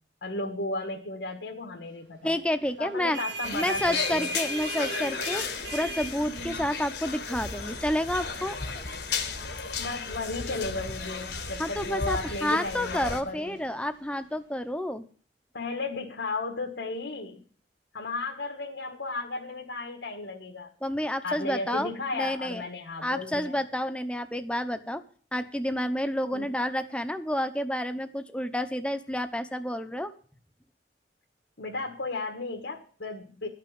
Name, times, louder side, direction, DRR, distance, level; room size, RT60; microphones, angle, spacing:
voice 1, 0.2-2.4 2.8-4.4 9.8-13.6 15.5-17.4 17.9-20.7 21.2-23.6 26.3-26.5 31.6-33.5, left 3 dB, 85° left, 1 dB, 1.7 m, -34 dB
voice 2, 2.2-3.2 3.5-5.4 5.7-8.6 11.6-15.0 20.8-22.6 23.0-25.0 25.3-30.1, left 1 dB, 5° left, 9 dB, 0.8 m, -30 dB
sound 1, 2.9-14.2, right 2 dB, 80° right, 1.8 m, -40 dB
sound 2, 3.4-13.2, left 5 dB, 65° left, 1.4 m, -35 dB
12.5 x 5.9 x 8.8 m, 0.44 s
head